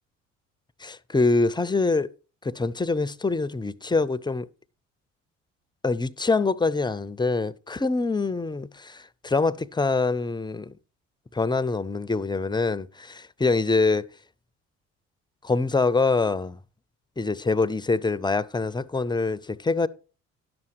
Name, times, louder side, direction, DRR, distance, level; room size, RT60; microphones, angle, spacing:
voice 1, 0.8-2.1 2.4-4.5 5.8-10.7 11.3-14.1 15.4-16.6 17.2-19.9, left 3 dB, 10° left, 0.5 m, -25 dB
10.5 x 7.0 x 4.6 m
hypercardioid pair, 55°, 37 cm